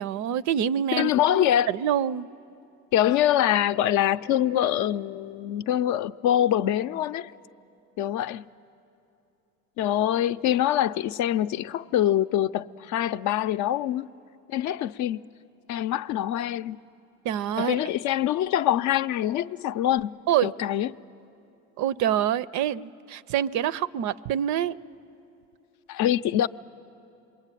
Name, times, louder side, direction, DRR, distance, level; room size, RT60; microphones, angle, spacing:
voice 1, 0.0-2.3 17.2-17.8 20.3-20.5 21.8-24.8, right 10 dB, 60° right, 0.5 m, -26 dB
voice 2, 0.9-1.7 2.9-7.3 8.0-8.4 9.8-14.1 14.5-15.2 15.7-16.8 17.6-20.9 25.9-26.5, left 11 dB, 60° left, 0.5 m, -24 dB
27.0 x 22.5 x 9.1 m
cardioid pair, 105°, 33 cm